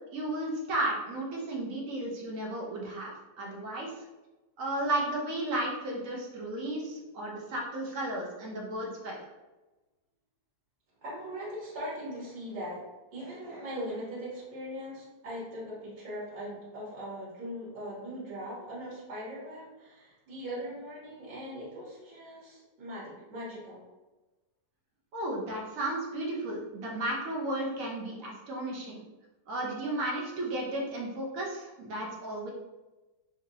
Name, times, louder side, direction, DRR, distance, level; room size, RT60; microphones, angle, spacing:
voice 1, 0.1-3.1 3.4-3.9 4.6-9.2 25.1-29.0 29.5-32.5, right 1 dB, 55° right, -2 dB, 1.0 m, -34 dB
voice 2, 11.0-12.8 13.1-23.8, equal, 85° right, -7 dB, 1.9 m, -40 dB
4.1 x 2.8 x 2.7 m, 1.1 s
omnidirectional pair, 1.9 m